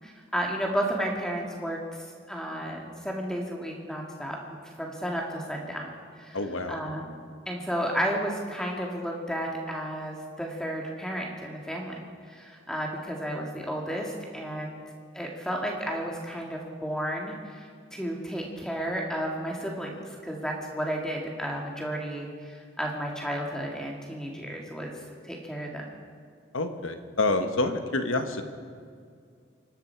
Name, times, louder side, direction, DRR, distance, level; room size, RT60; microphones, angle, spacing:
voice 1, 0.0-4.4 4.6-6.4 6.7-12.0 12.3-14.8 15.1-25.9, equal, 5° left, 0 dB, 2.1 m, -33 dB
voice 2, 6.3-6.8 26.5-28.4, left 2 dB, 85° left, 7 dB, 1.4 m, -27 dB
25.0 x 12.5 x 4.7 m, 2.2 s
head